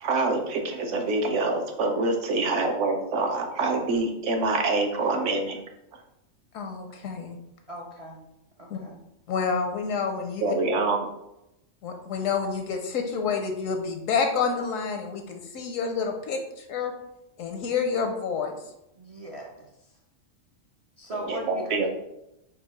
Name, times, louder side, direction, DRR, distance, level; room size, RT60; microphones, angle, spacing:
voice 1, 0.0-5.6 10.4-11.0 21.1-21.9, right 3 dB, 70° right, 3 dB, 1.0 m, -26 dB
voice 2, 6.5-7.4 8.7-8.8 9.3-10.5 11.8-16.9 17.4-18.6, left 5 dB, 80° left, 4 dB, 1.0 m, -28 dB
voice 3, 7.7-8.3 8.6-9.0 19.0-19.7 21.0-21.9, equal, 55° right, -2 dB, 0.4 m, -39 dB
4.4 x 2.3 x 4.7 m, 0.86 s
omnidirectional pair, 1.4 m